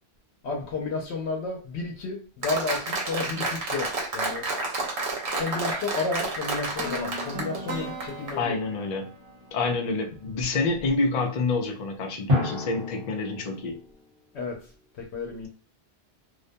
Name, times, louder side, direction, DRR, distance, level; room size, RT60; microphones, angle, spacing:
voice 1, 0.4-4.4 5.4-8.6 14.3-14.6 15.0-15.5, left 3 dB, 80° left, 0 dB, 0.9 m, -31 dB
Applause, 2.4-8.3, right 2 dB, 85° right, 1.0 m, -30 dB
sound 1, 6.8-10.7, equal, 15° right, 0.5 m, -39 dB
voice 2, 8.3-9.1 9.5-13.8, left 3 dB, 55° left, 2 dB, 0.5 m, -27 dB
Drum, 12.3-14.1, left 3 dB, 55° right, 1.2 m, -28 dB
2.4 x 2.1 x 2.6 m, 0.39 s
omnidirectional pair, 1.1 m